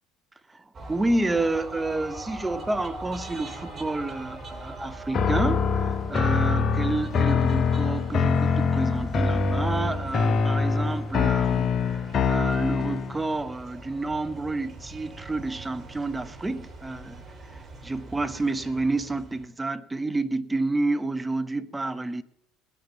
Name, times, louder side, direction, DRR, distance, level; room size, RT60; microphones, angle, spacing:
voice 1, 0.5-22.2, right 2 dB, 15° right, 1.1 m, -29 dB
sound 1, 0.7-19.5, right 2 dB, 35° right, 3.4 m, -41 dB
sound 2, 5.1-13.2, left 5 dB, 45° left, 0.9 m, -24 dB
18.5 x 9.7 x 7.1 m
hypercardioid pair, 60°, 0 cm